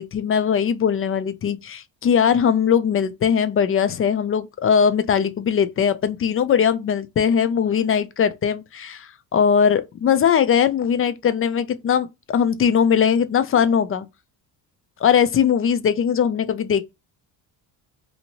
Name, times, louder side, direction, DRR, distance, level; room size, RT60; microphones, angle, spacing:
voice 1, 0.0-14.1 15.0-16.8, left 7 dB, 30° left, 0.4 m, -20 dB
2.8 x 2.6 x 2.8 m
supercardioid pair, 90°, 45 cm